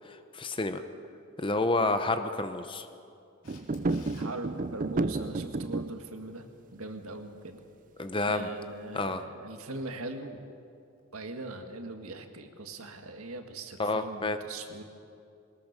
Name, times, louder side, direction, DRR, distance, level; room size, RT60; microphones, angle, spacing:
voice 1, 0.1-0.8 1.4-2.9 8.0-8.5 8.9-9.2 13.8-14.4, left 2 dB, 25° left, 9 dB, 0.9 m, -29 dB
Camera, 3.4-4.3 11.0-11.1, left 4 dB, 80° left, 2.9 m, -54 dB
sound 1, 3.5-6.0, right 2 dB, 35° right, 0.5 m, -31 dB
voice 2, 4.1-6.5 6.7-7.6 8.3-10.5 11.1-14.8, right 2 dB, 80° right, 6 dB, 1.8 m, -41 dB
21.5 x 20.0 x 6.7 m, 2.5 s
head